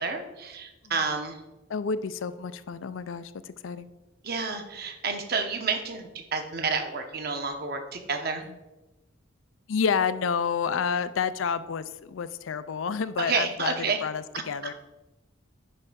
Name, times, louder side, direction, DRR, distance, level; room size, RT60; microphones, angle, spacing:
voice 1, 0.0-1.4 4.2-8.4 13.3-14.0, right 4 dB, 50° right, 5 dB, 1.0 m, -30 dB
voice 2, 1.7-3.9 8.5-8.6 9.7-13.8 14.0-14.7, left 6 dB, 80° left, 14 dB, 0.4 m, -29 dB
9.8 x 3.3 x 6.2 m, 1.0 s
head